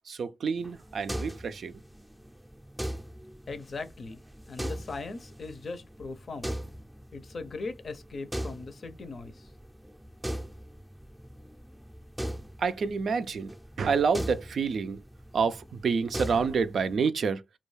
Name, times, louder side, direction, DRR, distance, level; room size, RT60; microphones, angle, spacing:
voice 1, 0.1-1.7 12.6-13.5 13.8-15.0 15.3-17.4, right 5 dB, 65° right, 0.3 m, -28 dB
sound 1, 0.6-17.0, equal, 10° right, 0.5 m, -40 dB
voice 2, 3.5-4.2 4.5-6.6 7.1-9.5, left 3 dB, 55° left, 0.5 m, -39 dB
2.3 x 2.3 x 3.1 m
supercardioid pair, 50°, 0 cm